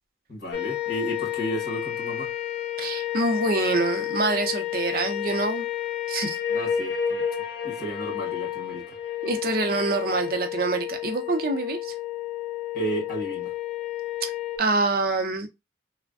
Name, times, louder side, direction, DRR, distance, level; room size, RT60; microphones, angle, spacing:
voice 1, 0.3-2.3 6.5-7.2 7.6-9.0 12.7-13.5, equal, 50° left, 1.1 m, -33 dB
sound 1, 0.5-14.6, left 11 dB, 80° left, 0.8 m, -30 dB
voice 2, 2.8-5.7 6.1-6.4 9.2-11.9 14.6-15.5, right 3 dB, 55° right, 0.5 m, -26 dB
3.3 x 2.1 x 2.3 m
head